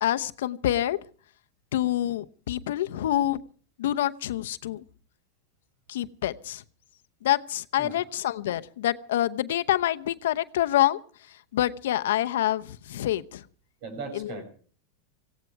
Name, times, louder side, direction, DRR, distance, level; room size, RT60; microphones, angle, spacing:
voice 1, 0.0-1.0 1.7-3.4 3.8-4.8 5.9-6.6 7.2-11.0 11.3-13.4 14.1-14.3, left 13 dB, 80° left, 11 dB, 0.8 m, -27 dB
voice 2, 13.8-14.4, right 4 dB, 60° right, 7 dB, 6.6 m, -37 dB
18.0 x 16.5 x 4.6 m, 0.44 s
supercardioid pair, 125°, 0 cm